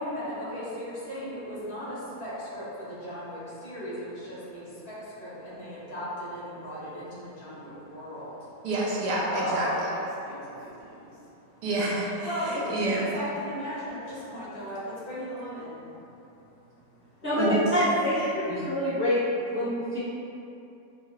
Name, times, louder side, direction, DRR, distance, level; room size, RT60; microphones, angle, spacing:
voice 1, 0.0-8.7 9.2-11.6 12.2-17.8, equal, 70° left, -11 dB, 2.2 m, -37 dB
voice 2, 8.6-9.7 11.6-12.3 12.7-13.1 17.4-17.6 18.5-18.6, right 2 dB, 85° right, -5 dB, 1.4 m, -28 dB
voice 3, 17.2-19.2 19.5-20.0, equal, 10° right, -11 dB, 0.7 m, -26 dB
6.8 x 2.8 x 2.4 m, 2.8 s
omnidirectional pair, 1.7 m